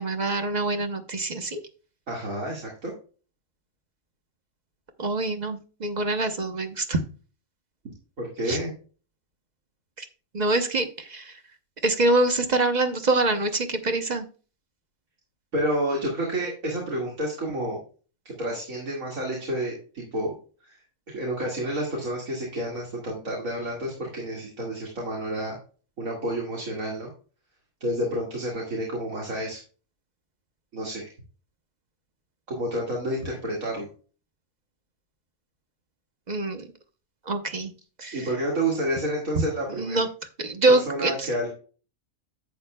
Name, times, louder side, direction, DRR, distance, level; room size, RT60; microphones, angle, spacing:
voice 1, 0.0-1.6 5.0-7.0 8.5-8.6 10.0-10.1 10.3-11.3 11.8-14.3 36.3-36.7 37.3-37.7 38.0-38.2 39.8-40.1 40.4-41.3, right 2 dB, 35° right, 6 dB, 0.9 m, -25 dB
voice 2, 2.1-2.9 8.2-8.7 15.5-17.8 18.3-20.3 20.6-20.8 21.1-25.6 26.0-27.1 27.8-29.6 30.7-31.1 32.5-33.9 38.1-40.0 40.9-41.5, right 1 dB, 75° right, -3 dB, 2.5 m, -29 dB
10.5 x 8.2 x 2.2 m, 0.37 s
omnidirectional pair, 1.4 m